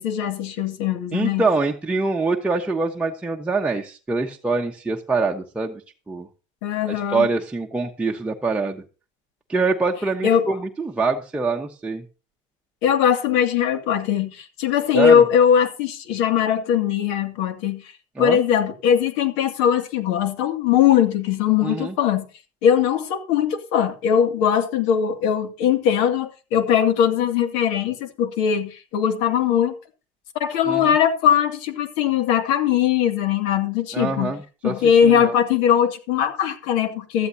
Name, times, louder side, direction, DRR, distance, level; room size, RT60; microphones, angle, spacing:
voice 1, 0.0-1.4 6.6-7.3 10.2-10.5 12.8-17.8 18.2-22.3 22.6-29.7 30.4-34.3 34.6-37.3, left 8 dB, 90° left, 2.3 m, -20 dB
voice 2, 1.1-5.8 6.1-6.3 6.9-8.8 9.5-12.0 14.9-15.2 18.2-18.4 21.6-21.9 30.7-30.9 33.9-34.8 35.0-35.3, right 3 dB, 10° right, 1.1 m, -24 dB
16.0 x 13.0 x 2.8 m
cardioid pair, 145°, 14 cm